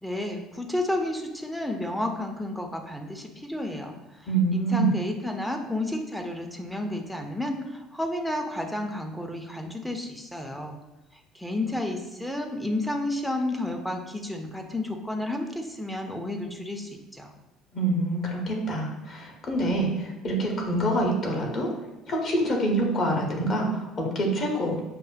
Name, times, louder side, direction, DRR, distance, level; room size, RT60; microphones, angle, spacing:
voice 1, 0.0-10.8 11.3-17.3, left 1 dB, 5° left, 3 dB, 0.5 m, -31 dB
voice 2, 4.3-4.9 17.7-21.7 22.1-24.8, right 1 dB, 45° left, 0 dB, 0.9 m, -26 dB
6.0 x 2.1 x 2.5 m, 1.0 s
figure-of-eight pair, 60°, 0 cm